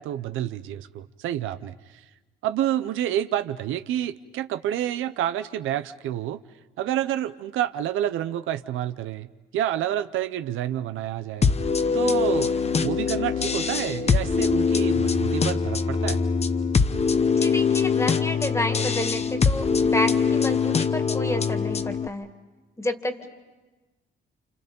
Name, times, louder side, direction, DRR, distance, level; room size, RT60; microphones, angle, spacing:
voice 1, 0.0-2.0 2.4-6.4 6.8-11.5 11.9-16.2, right 11 dB, 85° right, 11 dB, 0.7 m, -29 dB
sound 1, 11.4-22.1, left 5 dB, 30° left, 0.9 m, -23 dB
voice 2, 17.3-22.3 22.8-23.3, left 1 dB, 15° left, 7 dB, 2.1 m, -30 dB
30.0 x 27.5 x 5.3 m, 1.2 s
cardioid pair, 90°, 20 cm